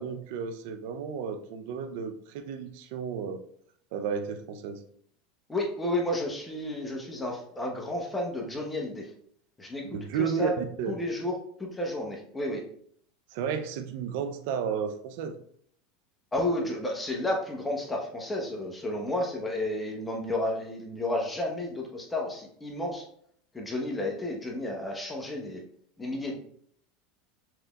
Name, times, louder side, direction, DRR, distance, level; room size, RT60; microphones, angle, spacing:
voice 1, 0.0-3.4 3.9-4.8 9.9-11.0 13.3-15.4, right 7 dB, 70° right, 7 dB, 0.6 m, -32 dB
voice 2, 5.5-9.1 9.6-9.8 10.2-10.5 10.9-12.6 16.3-23.1 23.5-25.6 26.0-26.4, left 1 dB, 15° left, 0 dB, 1.0 m, -31 dB
5.9 x 3.5 x 2.4 m, 0.65 s
hypercardioid pair, 100°, 0 cm